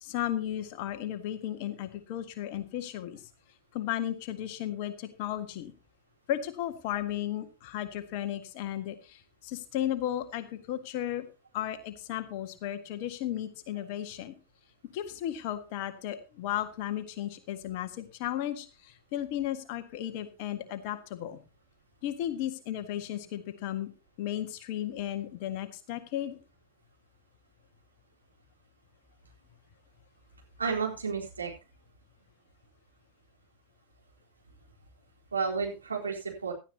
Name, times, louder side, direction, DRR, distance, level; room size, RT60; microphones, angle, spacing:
voice 1, 0.0-3.2 3.7-5.7 6.3-11.2 11.5-14.3 14.9-21.4 22.0-23.9 24.2-26.4, left 12 dB, 45° left, 9 dB, 1.8 m, -34 dB
voice 2, 30.6-31.5 35.3-36.5, right 5 dB, 75° right, -1 dB, 4.0 m, -31 dB
17.0 x 12.0 x 2.9 m, 0.30 s
figure-of-eight pair, 90°, 0 cm